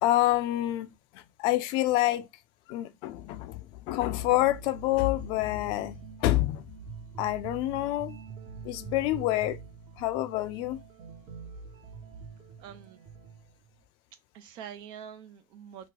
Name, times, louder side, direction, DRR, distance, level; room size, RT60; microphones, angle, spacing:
voice 1, 0.0-2.3 2.7-6.7 7.2-8.2 8.6-9.6 10.0-10.8, left 16 dB, 65° left, 0.4 m, -27 dB
sound 1, 4.2-13.7, right 5 dB, 45° right, 1.1 m, -45 dB
voice 2, 12.6-13.0 14.3-15.9, right 8 dB, 65° right, 0.6 m, -45 dB
2.9 x 2.1 x 3.7 m
cardioid pair, 130°, 9 cm